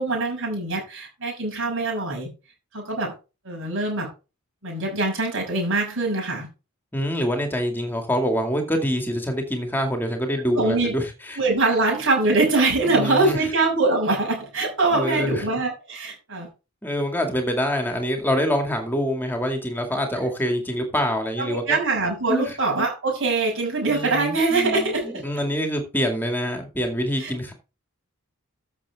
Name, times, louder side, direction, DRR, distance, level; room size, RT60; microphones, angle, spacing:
voice 1, 0.0-2.3 2.7-3.1 3.4-4.1 4.6-6.5 10.6-10.9 11.4-16.5 21.4-25.2 27.2-27.3, right 3 dB, 55° right, 6.4 m, -23 dB
voice 2, 6.9-11.4 12.8-13.5 14.9-15.6 16.8-21.8 22.3-22.6 23.8-27.5, equal, 10° left, 2.2 m, -25 dB
13.5 x 6.7 x 3.6 m
head